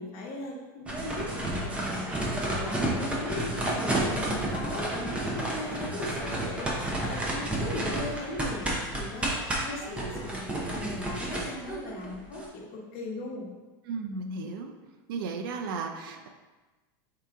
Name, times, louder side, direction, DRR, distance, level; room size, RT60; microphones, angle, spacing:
voice 1, 0.0-13.5, left 2 dB, 45° left, -1 dB, 1.0 m, -38 dB
sound 1, 0.9-12.5, right 1 dB, 10° right, 0.7 m, -31 dB
voice 2, 2.6-3.2 13.9-14.7 15.1-16.3, right 4 dB, 75° right, 5 dB, 0.5 m, -35 dB
4.6 x 2.8 x 3.5 m, 1.2 s
supercardioid pair, 145°, 12 cm